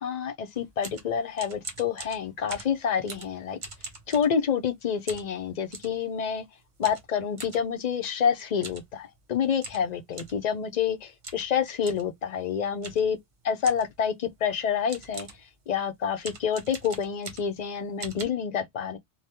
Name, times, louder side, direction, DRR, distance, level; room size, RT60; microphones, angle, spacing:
voice 1, 0.0-3.6 4.1-6.4 6.8-13.2 13.4-15.3 15.7-19.0, left 7 dB, 50° left, 0.5 m, -28 dB
sound 1, 0.5-4.7 5.1-6.0 6.8-7.6 8.5-8.9 9.2-9.3 9.6-10.4 11.2-11.5 11.8-12.1 12.8-13.1 13.6-14.0 14.6-14.7 14.9-15.5 16.2-17.6 18.0-18.2, right 3 dB, 45° right, 1.0 m, -42 dB
3.4 x 2.2 x 2.8 m
omnidirectional pair, 1.2 m